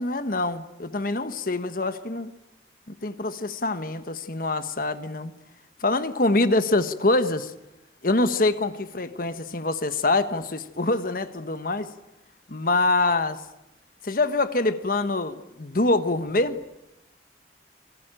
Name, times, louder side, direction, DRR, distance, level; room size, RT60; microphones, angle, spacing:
voice 1, 0.0-2.3 2.9-5.3 5.8-7.5 8.0-11.9 12.5-13.4 14.0-16.6, left 2 dB, 55° left, 1.3 m, -25 dB
28.5 x 21.0 x 9.0 m
head